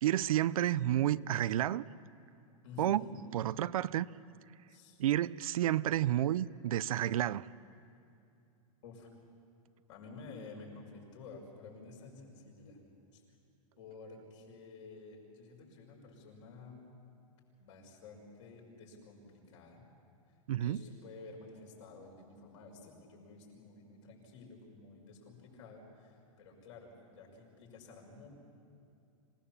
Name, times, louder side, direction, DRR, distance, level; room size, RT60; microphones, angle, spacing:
voice 1, 0.0-1.8 2.8-3.0 3.3-4.1 5.0-7.5 20.5-20.8, right 12 dB, 75° right, 18 dB, 0.5 m, -30 dB
voice 2, 2.6-3.1 4.7-5.0 8.8-9.1 9.9-12.8 13.1-13.2 13.8-16.8 17.6-19.9 20.6-28.3, left 4 dB, 60° left, 0 dB, 5.9 m, -52 dB
26.0 x 18.0 x 7.3 m, 2.6 s
supercardioid pair, 160°, 18 cm